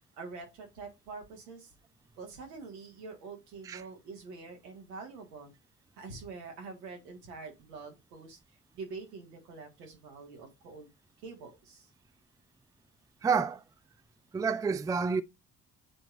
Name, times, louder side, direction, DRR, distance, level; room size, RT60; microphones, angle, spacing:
voice 1, 0.2-1.7 2.2-5.5 6.0-8.4 8.7-10.9 11.2-11.9, right 4 dB, 75° right, 1.9 m, -45 dB
voice 2, 13.2-13.6 14.3-15.2, right 5 dB, 10° right, 0.4 m, -29 dB
8.5 x 4.4 x 2.5 m
figure-of-eight pair, 45°, 48 cm